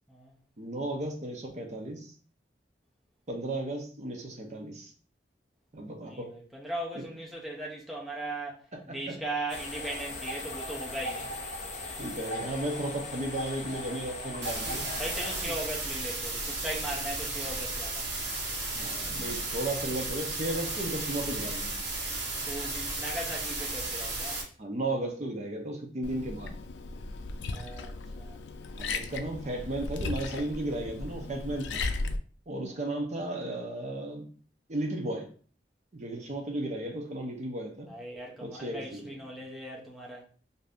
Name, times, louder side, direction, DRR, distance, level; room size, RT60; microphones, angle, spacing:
voice 1, 0.6-2.1 3.3-4.9 5.7-6.3 8.9-9.1 12.0-14.9 18.7-21.8 24.6-26.5 28.8-31.8 32.5-34.2 34.7-35.3 35.9-37.9 38.4-39.1, right 1 dB, 40° right, 0.6 m, -34 dB
voice 2, 6.0-8.6 8.8-11.4 15.0-18.1 22.5-24.4 27.5-28.4 32.7-32.8 37.9-40.3, right 1 dB, ahead, 0.6 m, -38 dB
sound 1, 9.5-15.4, left 2 dB, 40° left, 0.6 m, -38 dB
sound 2, 14.4-24.4, right 2 dB, 85° right, 1.2 m, -34 dB
Liquid, 26.0-32.2, left 3 dB, 85° left, 0.4 m, -36 dB
2.7 x 2.5 x 3.4 m
head